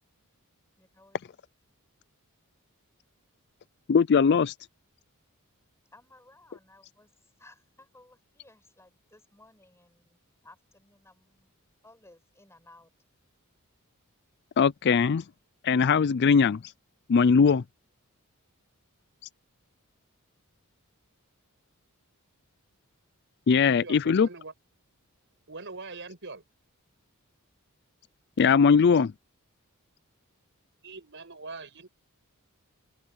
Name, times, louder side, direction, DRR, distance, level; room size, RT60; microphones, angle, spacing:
voice 1, 0.8-1.2 5.9-11.5 11.8-12.9, left 2 dB, 10° left, 6.5 m, -58 dB
voice 2, 3.9-4.5 14.6-15.2 15.6-16.7 17.1-17.6 23.5-24.3 28.4-29.1, left 6 dB, 50° left, 0.4 m, -20 dB
voice 3, 23.6-24.5 25.5-26.4 30.8-31.9, right 3 dB, 55° right, 6.1 m, -42 dB
open air
head